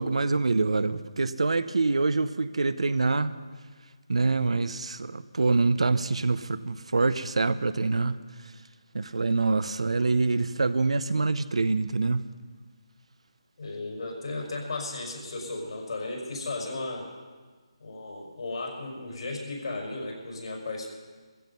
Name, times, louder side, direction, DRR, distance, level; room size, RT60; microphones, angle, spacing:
voice 1, 0.0-3.3 4.1-8.2 8.9-12.2, right 3 dB, 80° right, 0.8 m, -25 dB
voice 2, 13.6-17.1 17.8-20.9, left 2 dB, 65° left, 5.5 m, -35 dB
16.0 x 15.0 x 5.6 m
figure-of-eight pair, 165°, 3 cm